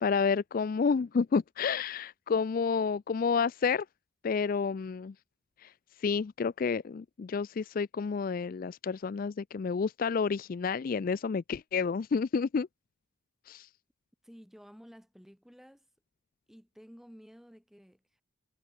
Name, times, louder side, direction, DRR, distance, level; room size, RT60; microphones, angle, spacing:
voice 1, 0.0-3.9 4.2-5.1 5.6-5.7 6.0-12.7 13.5-13.7, left 5 dB, 40° left, 0.3 m, -30 dB
voice 2, 14.2-15.9 16.5-18.2, equal, ahead, 5.7 m, -53 dB
head